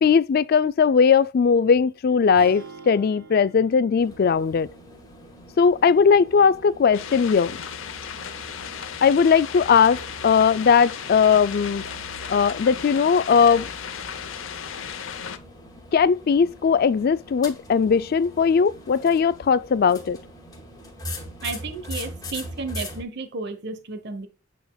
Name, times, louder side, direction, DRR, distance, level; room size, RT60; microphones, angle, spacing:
voice 1, 0.0-4.7 5.6-7.6 9.0-11.8 12.3-13.7 15.9-20.2, left 6 dB, 50° left, 0.3 m, -19 dB
sound 1, 2.4-6.5, right 4 dB, 85° right, 3.5 m, -47 dB
sound 2, 4.0-23.0, left 1 dB, 20° left, 2.0 m, -41 dB
sound 3, 6.9-15.4, left 7 dB, 90° left, 0.8 m, -35 dB
voice 2, 21.4-24.3, right 3 dB, 60° right, 1.0 m, -33 dB
8.4 x 5.1 x 2.3 m
head